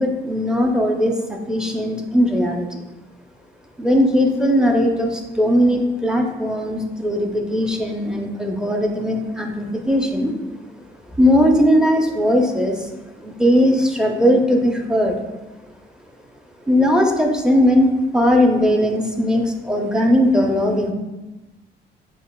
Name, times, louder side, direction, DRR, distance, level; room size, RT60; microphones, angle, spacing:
voice 1, 0.0-2.7 3.8-10.3 11.2-12.7 13.2-15.1 16.7-20.9, equal, 5° right, 2 dB, 0.6 m, -18 dB
6.2 x 2.9 x 2.3 m, 1.1 s
cardioid pair, 90°, 20 cm